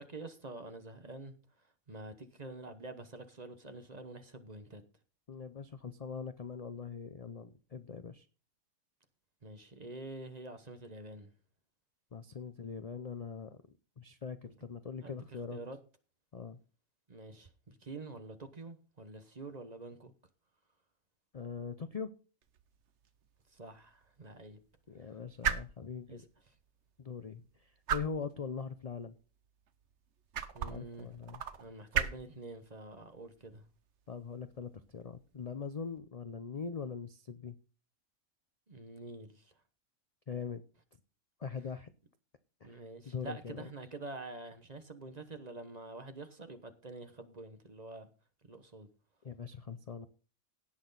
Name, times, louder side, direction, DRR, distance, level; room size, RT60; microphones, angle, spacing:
voice 1, 0.0-4.8 9.4-11.3 14.5-14.6 15.0-15.8 17.1-20.1 23.5-24.6 26.1-26.2 30.5-31.1 31.6-33.7 38.7-39.5 42.6-48.1 48.4-48.9, right 2 dB, 30° right, 1.1 m, -47 dB
voice 2, 5.3-8.3 12.1-13.6 14.0-15.6 16.3-16.6 21.3-22.1 24.9-26.2 27.0-29.2 30.7-31.4 34.1-37.5 40.3-40.6 41.4-41.9 42.6-42.8 43.1-43.7 49.2-50.1, left 5 dB, 45° left, 0.5 m, -42 dB
sound 1, 22.4-36.0, right 8 dB, 60° right, 1.1 m, -41 dB
17.5 x 6.2 x 4.0 m
omnidirectional pair, 1.5 m